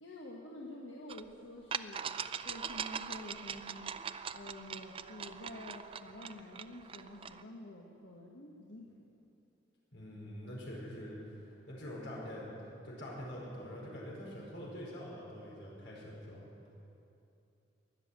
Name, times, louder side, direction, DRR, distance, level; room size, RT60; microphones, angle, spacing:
voice 1, 0.0-2.0 2.4-3.9 4.3-8.9, left 1 dB, 85° left, -2 dB, 1.5 m, -48 dB
sound 1, 1.1-1.2 1.7-7.4, right 7 dB, 30° right, 0.4 m, -41 dB
voice 2, 9.9-12.5 12.8-16.5, equal, 70° left, -4 dB, 5.0 m, -45 dB
21.5 x 7.3 x 9.0 m, 2.7 s
head